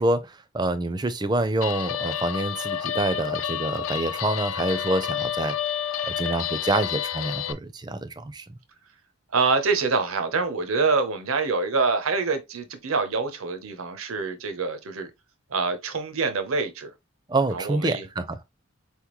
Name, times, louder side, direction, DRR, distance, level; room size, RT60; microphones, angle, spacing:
voice 1, 0.0-5.5 6.0-8.4 17.3-18.4, right 2 dB, 20° right, 0.4 m, -26 dB
Guitar, 1.6-7.5, left 9 dB, 75° left, 0.4 m, -29 dB
voice 2, 9.3-15.1 15.5-16.9 17.5-18.1, right 4 dB, 90° right, 0.8 m, -25 dB
4.3 x 3.6 x 3.0 m
head